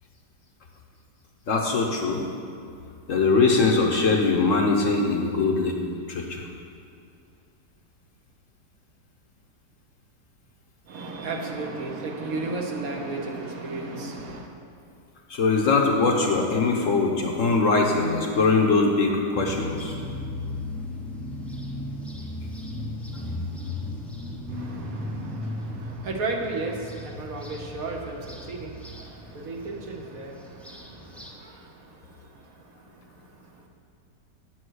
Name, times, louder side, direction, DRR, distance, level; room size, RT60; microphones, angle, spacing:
voice 1, 1.5-2.2 3.1-5.7 6.1-6.4 15.3-19.9, left 3 dB, 55° left, 1 dB, 1.1 m, -22 dB
voice 2, 10.9-14.5 24.5-32.0, right 3 dB, 60° right, 2 dB, 1.3 m, -34 dB
sound 1, 19.3-31.3, left 2 dB, ahead, 0.4 m, -36 dB
8.7 x 7.7 x 6.3 m, 2.4 s
omnidirectional pair, 1.8 m